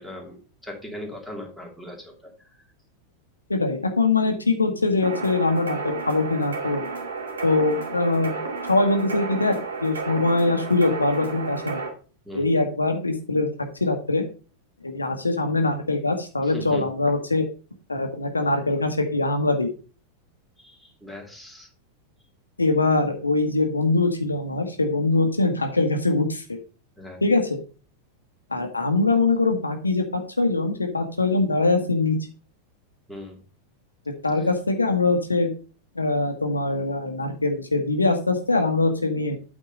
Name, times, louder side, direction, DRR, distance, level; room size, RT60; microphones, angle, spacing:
voice 1, 0.0-2.3 12.3-12.4 16.4-16.9 20.6-21.7 27.0-27.2 33.1-33.4, left 1 dB, ahead, 0 dB, 2.5 m, -39 dB
voice 2, 3.5-6.8 7.4-8.4 8.7-9.6 9.8-11.8 12.3-13.5 13.8-14.2 14.8-17.4 17.9-19.7 22.6-26.6 27.2-27.6 28.5-32.2 34.2-35.5 35.9-39.4, left 3 dB, 80° left, 5 dB, 1.2 m, -22 dB
sound 1, 5.0-11.9, right 4 dB, 65° right, 2.2 m, -32 dB
8.8 x 4.3 x 5.2 m, 0.36 s
figure-of-eight pair, 90°, 0 cm